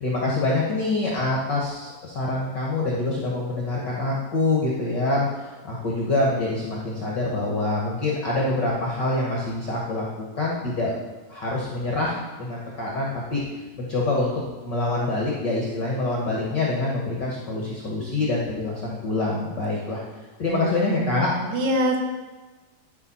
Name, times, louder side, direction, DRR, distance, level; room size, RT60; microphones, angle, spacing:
voice 1, 0.0-10.0 10.3-10.9 11.3-13.4 13.8-14.3 14.6-20.0 20.4-21.3, left 2 dB, 75° left, -4 dB, 0.9 m, -25 dB
voice 2, 20.5-22.0, right 1 dB, 80° right, 2 dB, 2.8 m, -26 dB
12.0 x 5.3 x 4.2 m, 1.2 s
omnidirectional pair, 4.0 m